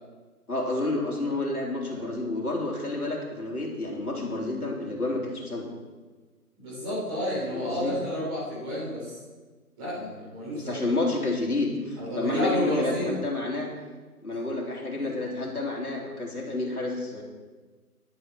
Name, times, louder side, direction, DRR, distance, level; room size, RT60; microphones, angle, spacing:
voice 1, 0.5-5.7 7.5-8.0 10.5-13.7 14.2-17.2, left 2 dB, 70° left, -1 dB, 3.2 m, -30 dB
voice 2, 6.6-9.2 9.8-10.8 11.9-13.1 14.9-15.1, left 1 dB, 15° right, -8 dB, 4.5 m, -30 dB
13.0 x 11.0 x 4.3 m, 1.3 s
figure-of-eight pair, 160°, 45 cm